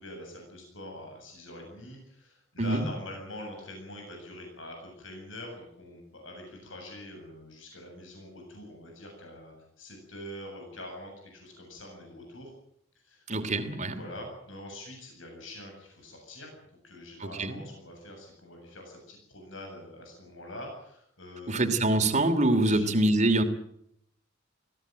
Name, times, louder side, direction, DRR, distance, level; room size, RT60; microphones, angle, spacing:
voice 1, 0.0-12.5 13.0-13.2 13.9-21.6 22.6-22.9, left 1 dB, 75° left, 2 dB, 7.8 m, -44 dB
voice 2, 2.6-2.9 13.3-14.0 17.2-17.6 21.5-23.4, right 2 dB, 35° right, 7 dB, 2.9 m, -25 dB
22.5 x 17.0 x 9.1 m, 0.71 s
head